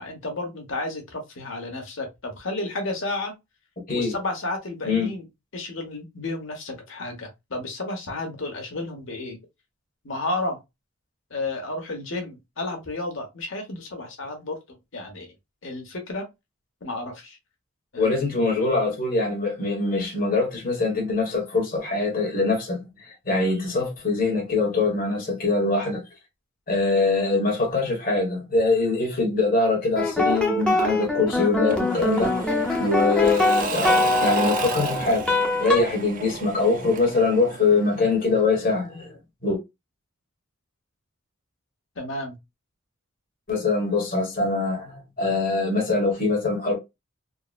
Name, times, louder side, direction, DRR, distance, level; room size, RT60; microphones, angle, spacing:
voice 1, 0.0-3.3 3.9-5.3 5.5-9.4 10.0-10.6 11.3-14.6 14.9-15.3 15.6-16.2 16.8-17.4 17.9-18.2 42.0-42.4, left 2 dB, 65° left, 1.1 m, -32 dB
voice 2, 18.0-26.0 26.7-32.5 32.8-35.3 35.6-39.6 43.5-46.8, left 3 dB, 40° left, 1.2 m, -23 dB
sound 1, 30.0-35.8, left 2 dB, 5° left, 0.6 m, -23 dB
Engine / Mechanisms / Drill, 31.7-38.4, right 3 dB, 40° right, 0.4 m, -32 dB
3.7 x 2.0 x 2.4 m
head